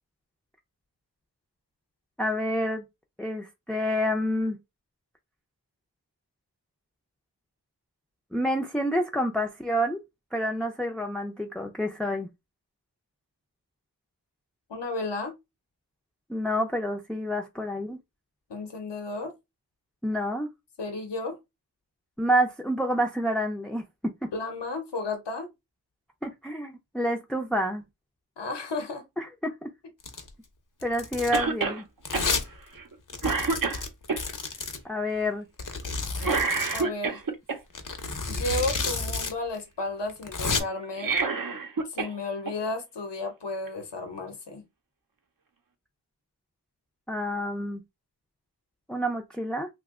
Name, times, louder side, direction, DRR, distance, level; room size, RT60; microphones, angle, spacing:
voice 1, 2.2-2.8 3.2-4.6 8.3-10.0 10.3-12.3 16.3-18.0 20.0-20.5 22.2-24.3 26.2-27.8 29.2-29.7 30.8-31.9 34.8-35.5 47.1-47.8 48.9-49.7, equal, ahead, 0.5 m, -28 dB
voice 2, 14.7-15.3 18.5-19.3 20.8-21.4 24.3-25.5 28.4-29.0 36.7-37.2 38.3-41.6 41.9-44.6, left 2 dB, 80° left, 0.9 m, -33 dB
Domestic sounds home sounds, 30.0-30.3 30.8-31.4 32.0-32.5 32.7-32.8 33.1-34.8 35.6-36.9 37.7-39.3 39.6-39.7 40.1-40.6, left 4 dB, 50° left, 0.7 m, -31 dB
Cough, 31.3-31.8 32.1-32.3 32.8-32.9 33.2-34.2 36.2-37.6 40.8-42.1 42.5-42.6 43.7-43.8, right 4 dB, 55° right, 0.7 m, -27 dB
2.8 x 2.2 x 3.5 m
wide cardioid pair, 55°, 41 cm